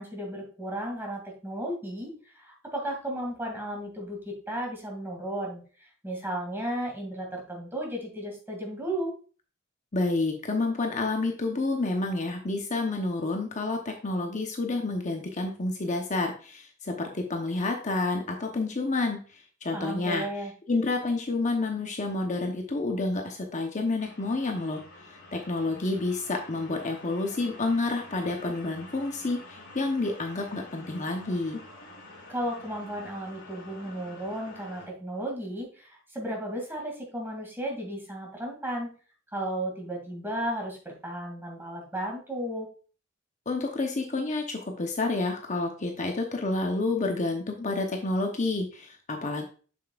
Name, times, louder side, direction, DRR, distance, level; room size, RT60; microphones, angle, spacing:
voice 1, 0.0-9.1 19.7-20.5 32.3-38.9 39.3-42.7, right 1 dB, 10° right, 0 dB, 2.2 m, -34 dB
voice 2, 9.9-20.3 20.7-24.8 25.3-31.6 43.5-49.5, left 2 dB, 35° left, 2 dB, 0.8 m, -29 dB
sound 1, 24.0-34.9, left 2 dB, 55° left, 2.5 m, -48 dB
6.9 x 6.9 x 2.4 m, 0.39 s
head